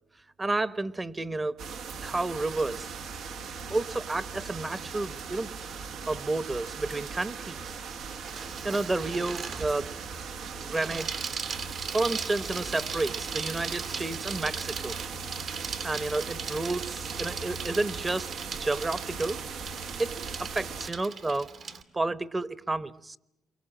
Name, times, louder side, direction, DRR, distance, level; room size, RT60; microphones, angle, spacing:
voice 1, 0.4-1.5 2.0-2.9 3.7-7.7 8.4-9.9 10.6-11.1 11.9-15.0 15.4-18.3 18.6-19.4 20.0-21.5 21.9-23.2, right 2 dB, 20° right, 15 dB, 1.0 m, -31 dB
sound 1, 1.6-20.9, right 5 dB, 80° right, 1.4 m, -39 dB
Bicycle, 8.2-21.8, right 5 dB, 60° right, 2.2 m, -39 dB
28.5 x 24.5 x 7.6 m, 0.85 s
cardioid pair, 90°, 0 cm